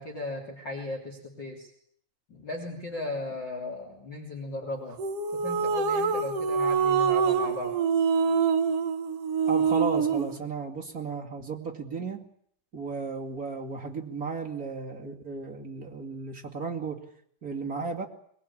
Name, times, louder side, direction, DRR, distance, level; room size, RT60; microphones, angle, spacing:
voice 1, 0.0-1.7 2.3-5.0 5.3-7.8, left 2 dB, 30° left, 2 dB, 3.4 m, -36 dB
sound 1, 5.0-10.4, right 6 dB, 60° right, 1.6 m, -25 dB
voice 2, 9.5-12.3 12.7-17.1 17.4-18.1, right 4 dB, 30° right, 0 dB, 2.0 m, -34 dB
23.0 x 21.0 x 8.7 m, 0.67 s
omnidirectional pair, 4.6 m